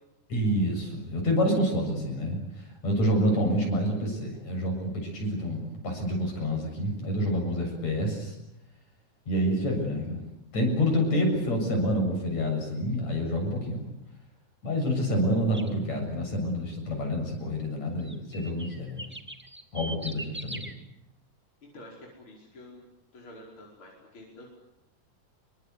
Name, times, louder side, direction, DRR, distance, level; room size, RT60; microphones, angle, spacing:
voice 1, 0.3-8.3 9.3-10.2 10.5-13.8 14.6-19.0 19.7-20.7, equal, 55° left, 3 dB, 8.5 m, -28 dB
sound 1, 15.5-15.7 18.0-20.7, right 1 dB, 5° right, 1.3 m, -40 dB
voice 2, 21.6-22.9 23.1-24.6, left 1 dB, 40° left, -1 dB, 5.9 m, -48 dB
27.5 x 24.0 x 8.4 m, 0.84 s
omnidirectional pair, 3.6 m